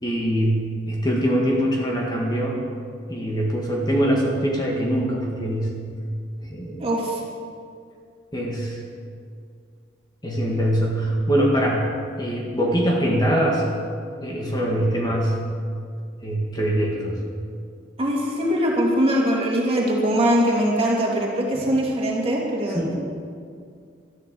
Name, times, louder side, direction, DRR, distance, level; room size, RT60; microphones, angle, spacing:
voice 1, 0.0-2.6 3.1-5.8 6.4-6.9 8.3-8.8 10.2-11.9 12.2-13.7 14.2-15.5 16.2-17.2 22.7-22.9, equal, 20° left, -2 dB, 1.9 m, -23 dB
voice 2, 6.8-7.2 18.0-22.9, equal, 30° right, -3 dB, 2.8 m, -22 dB
13.0 x 11.5 x 7.0 m, 2.2 s
head